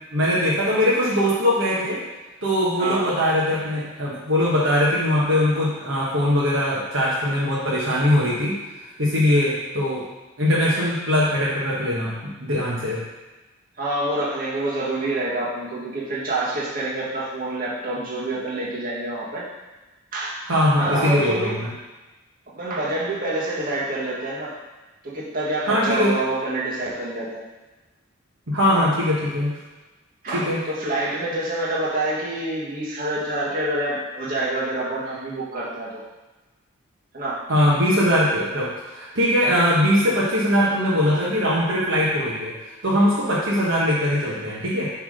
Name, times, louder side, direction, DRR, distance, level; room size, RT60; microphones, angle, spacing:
voice 1, 0.1-2.0 2.4-8.6 9.0-10.0 10.4-13.0 20.4-21.7 25.7-26.1 28.5-29.6 30.3-30.6 37.5-42.5 42.8-44.9, left 1 dB, 60° right, -6 dB, 1.3 m, -21 dB
voice 2, 2.8-3.1 13.8-19.5 20.1-20.4 20.7-21.6 22.5-24.5 25.0-27.4 28.7-28.9 30.2-36.0 37.1-37.4, right 2 dB, 45° right, -6 dB, 1.6 m, -27 dB
7.6 x 3.6 x 5.0 m, 1.1 s
head